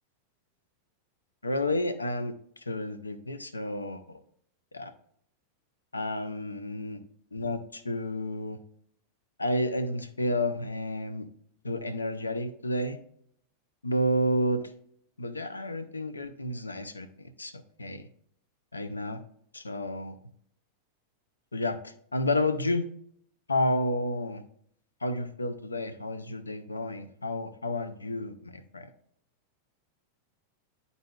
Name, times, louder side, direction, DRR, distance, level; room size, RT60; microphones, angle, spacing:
voice 1, 1.4-4.2 4.7-4.9 5.9-7.0 7.3-8.6 9.4-11.3 11.6-13.0 13.8-14.7 15.2-18.0 18.7-19.2 19.5-20.2 21.5-22.9 23.5-24.4 25.0-28.9, left 1 dB, 80° left, 10 dB, 0.5 m, -31 dB
11.0 x 4.0 x 2.3 m, 0.67 s
figure-of-eight pair, 90°, 0 cm